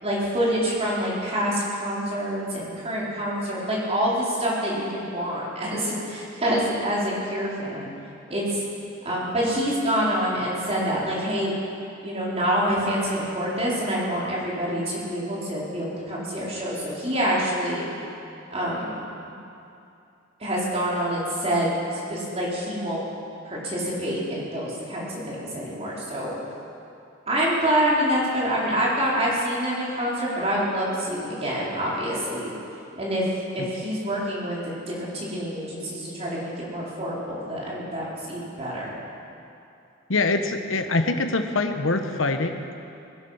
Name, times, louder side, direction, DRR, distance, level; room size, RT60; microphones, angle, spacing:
voice 1, 0.0-7.9 8.3-8.6 9.0-11.5 12.0-17.9 18.5-19.0 20.4-23.0 23.5-26.3 27.3-32.5 33.0-33.2 33.5-34.6 34.9-38.9, equal, 30° right, -6 dB, 4.0 m, -26 dB
voice 2, 40.1-42.7, left 3 dB, 70° left, 7 dB, 1.1 m, -24 dB
21.0 x 12.0 x 5.6 m, 2.7 s
head